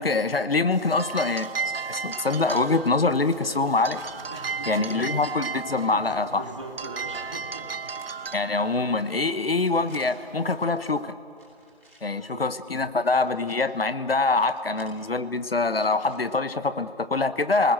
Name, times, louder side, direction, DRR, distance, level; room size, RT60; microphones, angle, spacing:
voice 1, 0.0-1.5 1.9-4.0 4.7-6.4 8.3-11.1 12.0-17.7, left 3 dB, 70° left, 13 dB, 1.1 m, -24 dB
sound 1, 0.7-11.1, right 5 dB, 65° right, 0.6 m, -36 dB
sound 2, 2.2-2.6 3.4-4.0 4.8-5.4 7.8-8.1 8.8-9.0 9.4-10.0 11.3-12.0 13.0-13.6 14.4-15.0 15.7-16.2, right 1 dB, 5° left, 3.3 m, -54 dB
sound 3, 2.6-7.7, left 2 dB, 35° left, 1.9 m, -50 dB
voice 2, 4.3-5.1 5.9-7.9 12.1-12.5, right 2 dB, 30° right, 3 dB, 2.2 m, -41 dB
28.0 x 20.0 x 7.7 m, 2.4 s
figure-of-eight pair, 175°, 31 cm